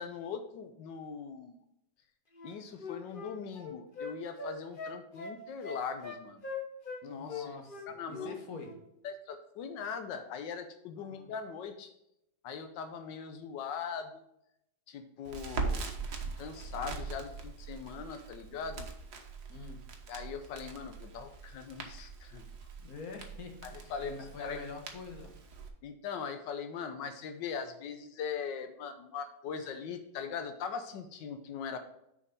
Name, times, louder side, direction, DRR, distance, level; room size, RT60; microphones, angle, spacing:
voice 1, 0.0-1.6 2.4-6.4 7.0-7.5 7.9-8.4 9.0-11.9 12.4-14.2 14.9-15.9 16.4-18.9 20.1-22.5 23.6-24.1 24.4-24.6 25.8-31.8, left 6 dB, 90° left, 7 dB, 1.4 m, -40 dB
Wind instrument woodwind instrument, 2.3-7.0 7.3-8.3 8.6-8.8, left 4 dB, 35° left, 1.2 m, -41 dB
voice 2, 7.0-8.8 11.0-11.3 19.5-19.8 22.8-25.3, left 4 dB, 55° left, 3 dB, 1.8 m, -46 dB
Crackle, 15.3-25.7, right 4 dB, 65° right, 1.6 m, -42 dB
6.9 x 5.2 x 5.2 m, 0.80 s
omnidirectional pair, 1.9 m